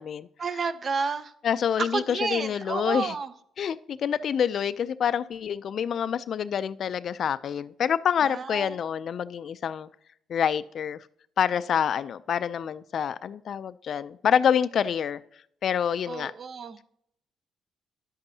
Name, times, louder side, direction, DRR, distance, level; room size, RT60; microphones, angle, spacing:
voice 1, 0.4-1.3 1.8-3.3 8.2-8.7 16.1-16.8, right 5 dB, 45° right, 0.6 m, -31 dB
voice 2, 1.4-3.1 3.6-9.9 10.3-11.0 11.4-15.2 15.6-16.3, left 8 dB, 60° left, 0.3 m, -27 dB
10.5 x 8.0 x 2.7 m
cardioid pair, 85°, 0 cm